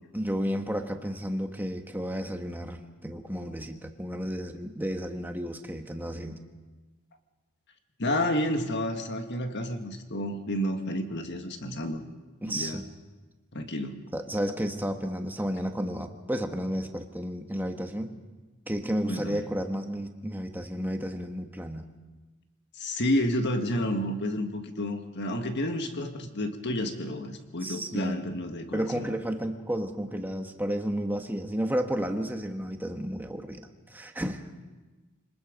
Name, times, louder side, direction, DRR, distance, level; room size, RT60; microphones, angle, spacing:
voice 1, 0.1-6.4 12.4-12.9 14.1-18.1 18.7-21.9 27.6-28.2 28.7-33.6 33.9-34.4, equal, 10° right, 5 dB, 1.3 m, -32 dB
voice 2, 8.0-12.0 12.5-12.8 13.5-14.0 19.1-19.4 22.8-29.1, left 1 dB, 55° left, 6 dB, 1.7 m, -30 dB
25.5 x 20.0 x 5.2 m, 1.2 s
head